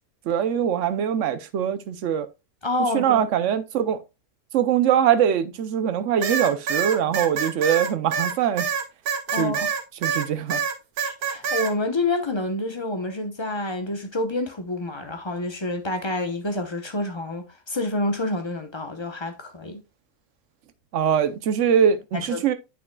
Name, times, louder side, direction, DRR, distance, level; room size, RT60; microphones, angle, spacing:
voice 1, 0.3-2.3 2.9-4.0 4.5-8.7 9.4-9.6 10.0-10.6 20.9-22.5, right 9 dB, 60° right, 1.0 m, -22 dB
voice 2, 2.6-3.2 9.3-9.7 11.0-19.8 22.1-22.4, left 2 dB, 20° left, 0.8 m, -28 dB
sound 1, 6.2-10.3 10.5-11.7, right 6 dB, 85° right, 1.5 m, -26 dB
8.3 x 6.3 x 2.3 m
omnidirectional pair, 1.5 m